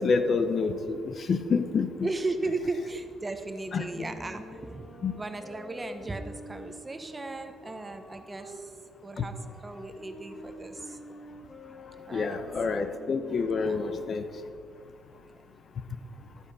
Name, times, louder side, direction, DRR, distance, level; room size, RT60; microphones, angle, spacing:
voice 1, 0.0-1.9 3.7-3.8 5.0-5.1 9.2-9.3 12.1-14.2, left 4 dB, 50° left, 9 dB, 0.8 m, -27 dB
voice 2, 2.0-8.7 9.0-9.4 9.6-11.0 12.1-12.4 13.6-13.8, right 2 dB, 20° right, 8 dB, 0.9 m, -36 dB
sound 1, 3.1-8.6 9.2-14.4, equal, 35° left, 2.1 m, -48 dB
12.0 x 8.2 x 5.5 m, 2.1 s
cardioid pair, 90°, 0 cm